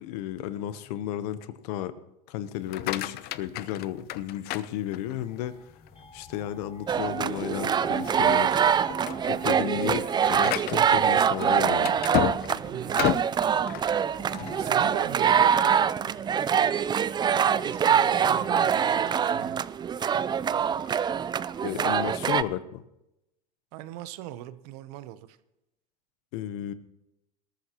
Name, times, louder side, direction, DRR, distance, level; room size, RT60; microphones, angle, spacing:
voice 1, 0.0-5.5 6.1-8.6 9.3-12.0 21.6-22.8 26.3-26.7, left 12 dB, 70° left, 14 dB, 0.9 m, -33 dB
sound 1, 2.5-5.4 5.9-6.3 6.8-6.9 7.3-7.5 8.1-8.4 8.7-14.6, left 14 dB, 50° left, 0.6 m, -32 dB
sound 2, 5.2-15.1, left 3 dB, 30° left, 3.0 m, -47 dB
sound 3, 6.9-22.4, right 8 dB, 20° right, 0.4 m, -24 dB
voice 2, 12.7-13.2 14.6-15.6 16.0-16.4 17.6-19.6 23.7-25.4, right 13 dB, 70° right, 14 dB, 0.9 m, -40 dB
20.5 x 13.5 x 3.0 m, 0.90 s
hypercardioid pair, 95°, 21 cm